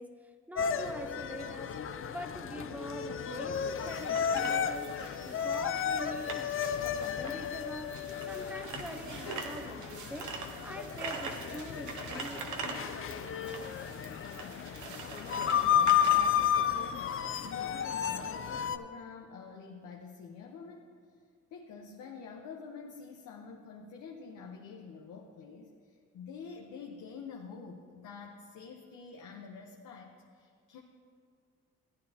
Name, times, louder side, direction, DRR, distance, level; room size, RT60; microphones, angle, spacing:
voice 1, 0.0-5.0 5.3-8.0 8.3-13.1, equal, 5° right, 6 dB, 0.8 m, -44 dB
sound 1, 0.6-18.8, left 9 dB, 45° left, 0.5 m, -33 dB
sound 2, 3.5-18.0, right 4 dB, 75° right, 1.2 m, -44 dB
voice 2, 14.4-14.8 15.3-20.9 21.5-30.8, left 5 dB, 80° left, 0 dB, 0.9 m, -47 dB
15.0 x 9.5 x 2.8 m, 2.1 s
cardioid pair, 90°, 30 cm